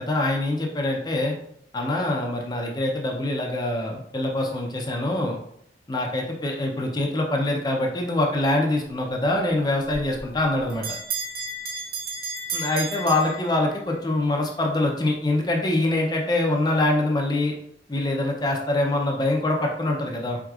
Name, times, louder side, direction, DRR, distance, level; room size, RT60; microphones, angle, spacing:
voice 1, 0.0-1.3 1.7-5.4 5.9-10.8 12.5-17.5 17.9-20.4, left 2 dB, 20° left, 1 dB, 0.5 m, -24 dB
Bell, 10.2-14.0, right 3 dB, 50° right, 1.1 m, -33 dB
4.7 x 3.6 x 2.4 m, 0.71 s
head